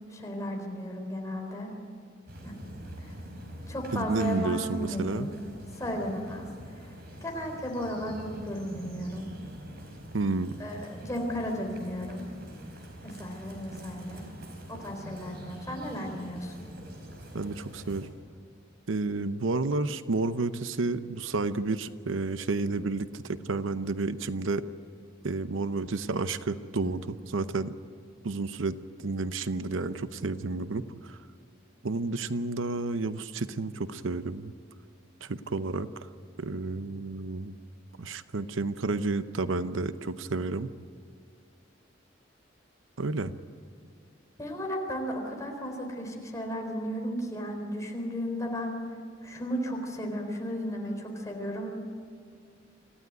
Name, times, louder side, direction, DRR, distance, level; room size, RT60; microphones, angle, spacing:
voice 1, 0.1-1.7 2.4-2.6 3.0-3.1 3.7-5.3 5.8-6.4 7.2-9.3 10.6-12.3 13.0-14.2 14.7-16.5 44.4-48.8 49.2-51.8, equal, 15° left, 1 dB, 4.1 m, -34 dB
sound 1, 2.3-18.1, equal, 55° right, 4.7 m, -45 dB
voice 2, 3.9-5.3 10.1-10.6 17.3-18.1 18.9-24.7 25.2-27.7 28.2-28.8 29.0-31.2 31.8-34.5 35.2-35.9 36.4-37.6 38.0-40.7 43.0-43.3, right 3 dB, 90° right, 12 dB, 0.8 m, -31 dB
26.0 x 15.0 x 9.4 m, 2.2 s
head